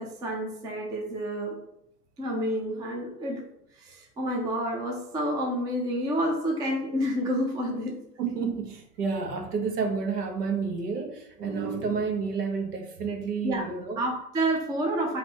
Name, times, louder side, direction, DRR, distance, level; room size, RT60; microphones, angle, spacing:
voice 1, 0.0-1.6 2.2-3.5 3.8-8.0 13.4-13.7 14.0-15.2, equal, 10° right, 0 dB, 0.4 m, -29 dB
voice 2, 8.2-14.0, right 5 dB, 80° right, 3 dB, 1.2 m, -30 dB
4.3 x 2.8 x 4.2 m, 0.76 s
hypercardioid pair, 120°, 46 cm